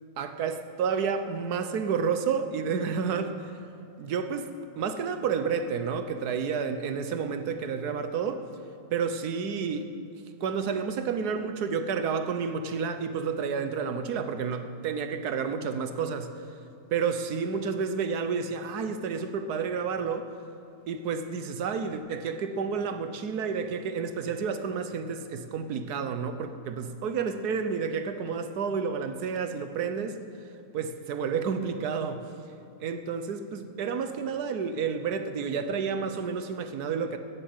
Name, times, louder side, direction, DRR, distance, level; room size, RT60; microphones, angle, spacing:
voice 1, 0.2-3.5 4.0-8.4 8.9-9.9 10.4-16.4 16.9-20.3 20.9-30.2 30.7-32.2 32.8-37.2, right 6 dB, 80° right, 9 dB, 1.4 m, -30 dB
16.0 x 7.8 x 7.8 m, 2.8 s
omnidirectional pair, 1.6 m